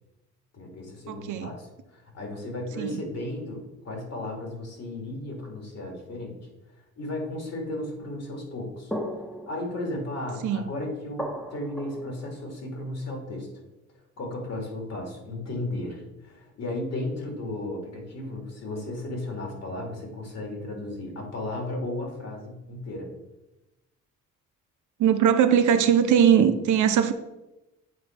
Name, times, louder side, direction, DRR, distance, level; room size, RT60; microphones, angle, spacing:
voice 1, 0.5-6.3 7.0-8.9 9.5-13.5 14.2-23.1, left 1 dB, 60° left, 1 dB, 2.6 m, -34 dB
voice 2, 1.1-1.5 2.8-3.0 10.4-10.6 25.0-27.1, right 8 dB, 75° right, 8 dB, 0.8 m, -20 dB
sound 1, 8.9-13.0, equal, 5° left, 1.1 m, -38 dB
8.4 x 4.0 x 4.5 m, 0.97 s
cardioid pair, 90°, 30 cm